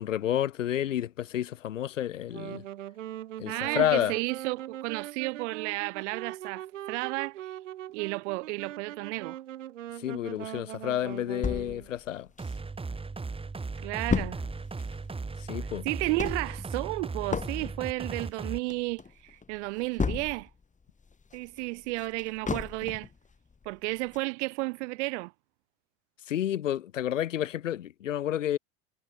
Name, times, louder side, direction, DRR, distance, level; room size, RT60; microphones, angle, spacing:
voice 1, 0.0-2.6 3.4-4.2 10.0-12.3 15.5-15.9 26.3-28.6, left 11 dB, 90° left, 2.2 m, -30 dB
Wind instrument woodwind instrument, 2.2-11.9, right 12 dB, 85° right, 2.9 m, -41 dB
voice 2, 3.5-7.4 7.9-9.4 13.8-14.4 15.8-20.5 21.3-23.1 23.7-25.3, right 25 dB, 70° right, 3.7 m, -32 dB
sound 1, 11.4-13.0 13.4-13.5 13.6-20.6 21.0-23.2 23.6-23.7 24.1-24.2, left 5 dB, 20° left, 6.2 m, -34 dB
sound 2, 12.4-18.6, right 4 dB, 15° right, 3.5 m, -37 dB
hypercardioid pair, 90°, 37 cm